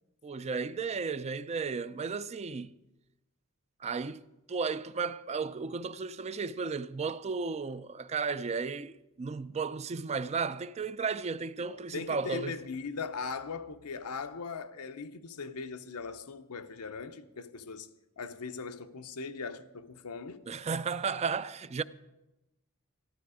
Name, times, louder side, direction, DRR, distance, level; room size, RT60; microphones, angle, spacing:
voice 1, 0.2-2.7 3.8-4.2 4.5-12.6 20.5-21.8, right 5 dB, 30° right, 0.4 m, -34 dB
voice 2, 11.7-17.9 18.2-20.5, left 4 dB, 90° left, 0.8 m, -40 dB
14.0 x 12.5 x 4.9 m
head